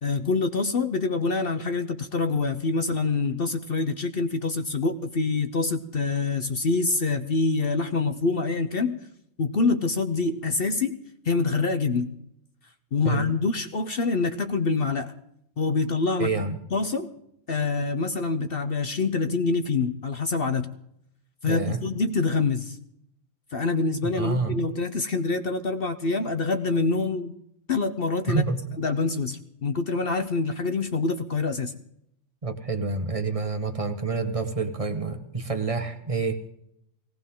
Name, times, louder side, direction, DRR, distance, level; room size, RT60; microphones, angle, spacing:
voice 1, 0.0-9.0 9.4-11.0 11.2-12.1 12.9-15.1 15.6-16.3 16.7-17.1 17.5-20.7 21.4-22.8 23.5-27.3 27.7-28.4 28.8-31.7, left 3 dB, 50° left, 8 dB, 1.0 m, -26 dB
voice 2, 16.2-16.6 21.4-21.8 24.1-24.6 28.3-28.6 32.4-36.4, right 4 dB, 25° right, 8 dB, 1.4 m, -28 dB
19.5 x 18.0 x 3.8 m, 0.74 s
omnidirectional pair, 1.3 m